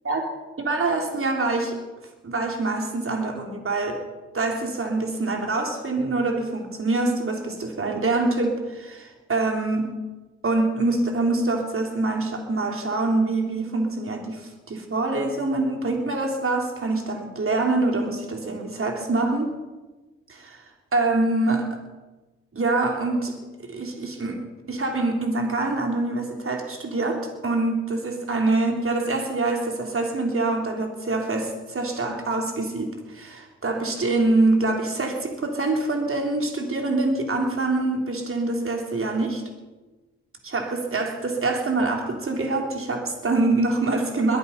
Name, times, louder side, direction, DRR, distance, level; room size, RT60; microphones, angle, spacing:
voice 1, 0.6-1.8 2.2-4.0 4.3-9.9 10.4-19.5 20.3-20.6 20.9-21.8 22.5-23.4 23.6-24.4 24.7-39.4 40.4-44.4, right 2 dB, 40° right, 2 dB, 3.7 m, -25 dB
21.5 x 9.2 x 5.6 m, 1.2 s
hypercardioid pair, 50°, 34 cm